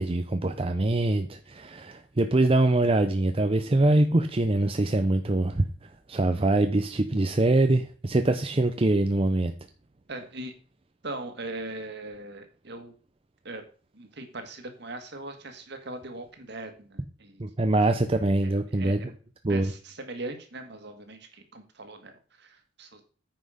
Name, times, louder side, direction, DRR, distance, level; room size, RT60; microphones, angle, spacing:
voice 1, 0.0-5.6 6.1-9.5 17.4-19.0 19.4-19.7, right 2 dB, 30° right, 0.6 m, -24 dB
voice 2, 10.1-10.5 11.0-12.9 13.4-13.6 13.9-17.4 17.8-18.0 18.4-19.1 19.5-23.0, right 2 dB, 60° right, 1.9 m, -40 dB
9.4 x 6.0 x 5.0 m
head